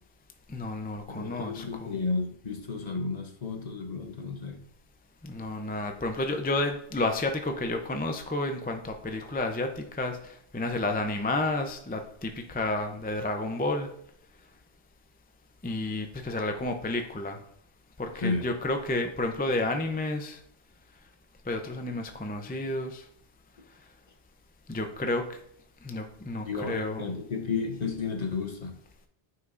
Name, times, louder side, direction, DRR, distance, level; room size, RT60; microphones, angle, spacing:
voice 1, 0.5-1.9 5.2-13.9 15.6-17.4 18.0-20.4 21.5-23.0 24.7-25.4 25.8-27.1, left 2 dB, 10° left, 5 dB, 0.5 m, -31 dB
voice 2, 1.1-4.6 18.2-18.4 26.5-28.8, left 4 dB, 45° left, 5 dB, 0.9 m, -32 dB
9.4 x 5.7 x 2.6 m, 0.69 s
omnidirectional pair, 1.1 m